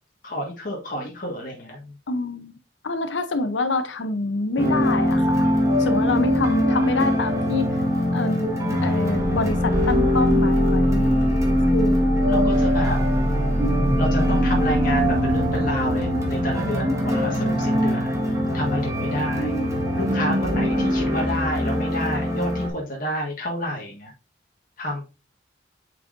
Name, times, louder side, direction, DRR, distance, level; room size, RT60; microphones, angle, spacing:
voice 1, 0.2-2.0 12.3-13.0 14.0-18.1 18.5-19.5 19.9-24.1 24.8-25.0, equal, 45° left, 1.6 m, -29 dB
voice 2, 2.1-2.5 2.8-5.4 5.8-7.7 8.1-8.5 8.8-11.2 11.7-12.5, left 2 dB, 80° left, 0.7 m, -26 dB
sound 1, 4.6-22.7, equal, 15° right, 1.4 m, -21 dB
sound 2, 9.5-21.8, equal, ahead, 2.0 m, -40 dB
8.0 x 4.8 x 2.6 m
head